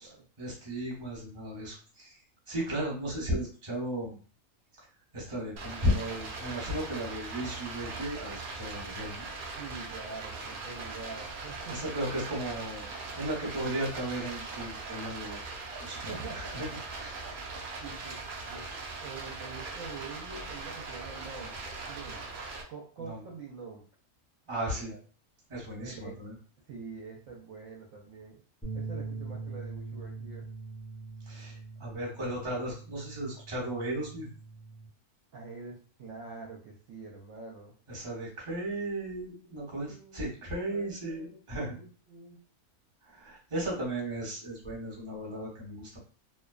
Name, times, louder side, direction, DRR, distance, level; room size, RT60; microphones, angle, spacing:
voice 1, 0.4-2.2 2.5-4.1 5.1-9.2 11.7-12.9 13.1-15.4 15.8-16.7 17.0-17.1 23.0-23.2 24.5-24.9 25.5-26.3 31.3-34.3 37.9-41.7 43.0-46.0, right 1 dB, 25° right, -4 dB, 0.9 m, -35 dB
Stream, 5.6-22.6, right 3 dB, 85° right, 0.4 m, -40 dB
voice 2, 9.6-11.8 16.0-16.6 17.8-18.2 18.5-18.7 19.0-21.5 21.9-22.2 22.7-23.8 24.7-25.0 25.8-26.3 26.7-28.4 28.7-30.5 35.3-37.7 39.9-40.3 40.7-42.4, right 4 dB, 70° right, -2 dB, 0.9 m, -45 dB
sound 1, 28.6-34.9, right 3 dB, 10° left, 0.4 m, -42 dB
2.6 x 2.2 x 2.3 m, 0.40 s
omnidirectional pair, 1.6 m